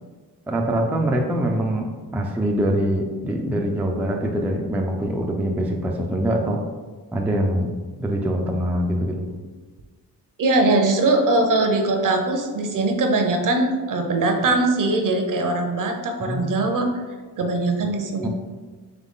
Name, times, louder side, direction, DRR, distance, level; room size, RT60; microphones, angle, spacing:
voice 1, 0.5-1.9 2.1-6.6 7.1-7.7 8.0-9.3 16.2-16.5 18.2-18.3, right 1 dB, 5° right, 1 dB, 0.3 m, -23 dB
voice 2, 10.4-16.9 17.4-18.3, right 2 dB, 50° right, 4 dB, 0.7 m, -21 dB
3.9 x 3.0 x 3.6 m, 1.4 s
cardioid pair, 100°, 39 cm